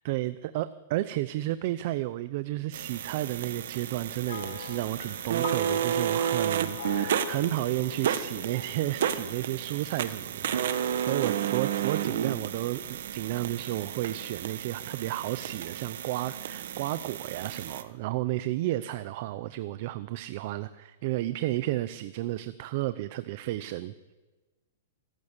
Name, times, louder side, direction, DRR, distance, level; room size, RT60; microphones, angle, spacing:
voice 1, 0.0-23.9, right 16 dB, 35° right, 14 dB, 0.7 m, -32 dB
sound 1, 2.7-17.8, right 9 dB, 55° right, 1.5 m, -32 dB
sound 2, 4.3-9.8, left 8 dB, 70° left, 1.3 m, -43 dB
25.5 x 14.5 x 8.3 m, 1.3 s
hypercardioid pair, 175°, 0 cm